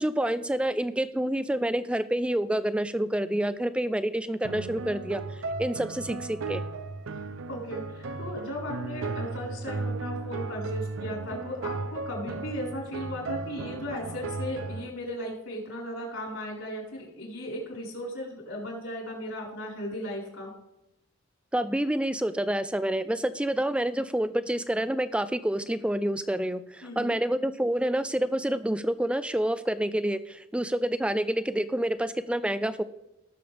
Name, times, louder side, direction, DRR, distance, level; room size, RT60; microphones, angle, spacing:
voice 1, 0.0-5.2 5.6-6.6 21.5-32.8, right 1 dB, 5° right, 13 dB, 0.3 m, -28 dB
sound 1, 4.4-14.9, right 3 dB, 65° right, 0.5 m, -35 dB
voice 2, 7.1-20.5 26.8-27.2, left 1 dB, 70° left, -3 dB, 4.4 m, -36 dB
18.5 x 7.0 x 3.4 m, 0.92 s
head